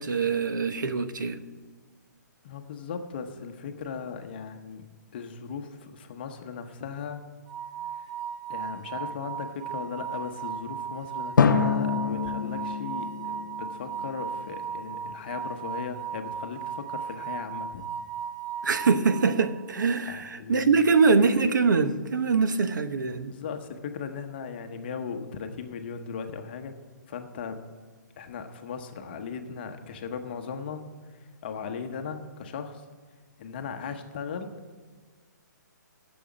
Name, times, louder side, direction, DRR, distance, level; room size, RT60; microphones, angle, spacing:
voice 1, 0.0-1.4 18.6-23.3, right 4 dB, 75° right, 0.9 m, -23 dB
voice 2, 2.4-4.9 5.1-7.3 8.0-8.1 8.5-17.8 20.1-20.8 23.3-26.7 27.1-27.6 28.2-32.9 33.4-34.5, left 6 dB, 30° left, 0.9 m, -37 dB
sound 1, 7.5-19.7, right 7 dB, 20° right, 0.5 m, -36 dB
Drum, 11.4-14.3, left 6 dB, 85° left, 0.7 m, -26 dB
9.0 x 7.0 x 8.7 m
hypercardioid pair, 170°, 10 cm